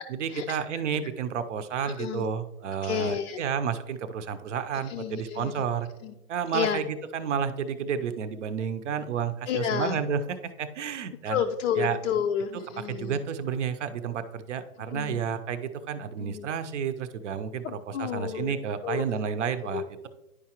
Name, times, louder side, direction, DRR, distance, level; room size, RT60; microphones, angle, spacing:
voice 1, 0.1-5.9 6.3-11.4 11.8-12.0 12.8-20.1, right 7 dB, 50° right, 10 dB, 0.6 m, -31 dB
voice 2, 1.8-2.3 2.8-3.4 4.9-5.7 6.0-6.1 6.5-6.8 9.5-10.0 11.3-13.2 14.9-15.2 16.2-16.5 17.6-18.5 18.8-19.0 19.7-20.1, left 8 dB, 55° left, 5 dB, 0.5 m, -30 dB
10.0 x 4.8 x 2.9 m, 1.0 s
hypercardioid pair, 150°, 45 cm